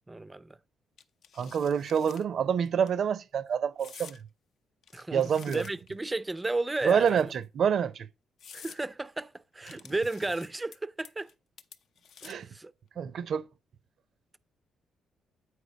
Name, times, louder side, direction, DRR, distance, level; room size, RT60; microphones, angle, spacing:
voice 1, 0.1-0.6 4.9-7.3 8.5-11.3 12.5-12.7, right 2 dB, 15° right, 0.4 m, -33 dB
sound 1, 1.0-2.2 2.7-2.9 3.8-4.2 4.8-6.0 6.8-7.4 7.9-8.0 8.4-8.8 9.7-10.8 11.0-11.3 11.6-12.5, left 7 dB, 65° left, 0.7 m, -50 dB
voice 2, 1.4-4.2 5.1-5.6 6.8-8.1 9.7-9.8 12.2-12.5 13.0-13.4, right 7 dB, 60° right, 0.6 m, -27 dB
8.2 x 4.6 x 5.1 m
cardioid pair, 90°, 0 cm